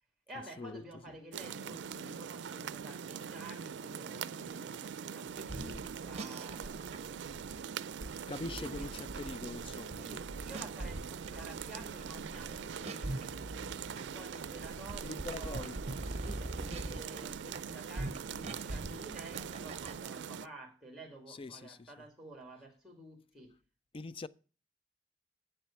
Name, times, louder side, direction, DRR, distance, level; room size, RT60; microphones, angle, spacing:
voice 1, 0.3-7.6 8.6-8.9 10.0-15.7 16.2-23.5, right 1 dB, ahead, 2.3 m, -51 dB
sound 1, 1.3-20.5, right 7 dB, 90° right, 0.4 m, -43 dB
sound 2, 5.4-20.0, right 2 dB, 40° right, 0.8 m, -43 dB
voice 2, 8.3-10.1 15.0-15.8 21.3-21.9 23.9-24.3, left 3 dB, 30° left, 0.4 m, -43 dB
8.0 x 7.5 x 7.0 m
head